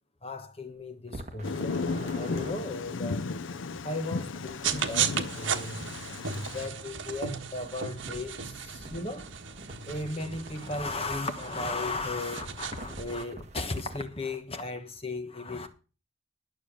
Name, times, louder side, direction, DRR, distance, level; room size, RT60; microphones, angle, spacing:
voice 1, 0.2-1.9 2.2-3.2 3.8-5.9 6.5-9.3 9.9-15.7, left 2 dB, 30° left, 1.3 m, -36 dB
sound 1, 1.1-2.5 4.3-4.9 7.6-14.0, right 1 dB, 35° right, 1.6 m, -46 dB
Thunder, 1.4-6.7, left 4 dB, 75° left, 0.6 m, -34 dB
sound 2, 4.6-13.2, right 7 dB, 75° right, 1.4 m, -35 dB
12.0 x 6.7 x 6.6 m
head